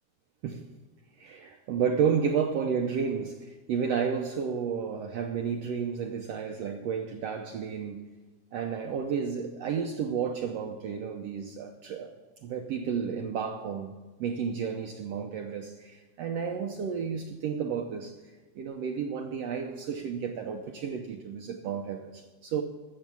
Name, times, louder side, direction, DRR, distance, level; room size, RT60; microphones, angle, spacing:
voice 1, 1.2-8.0 8.5-12.1 12.4-13.9 14.2-18.2 18.5-22.6, right 6 dB, 75° right, 1.5 m, -31 dB
13.5 x 7.4 x 7.0 m
omnidirectional pair, 3.6 m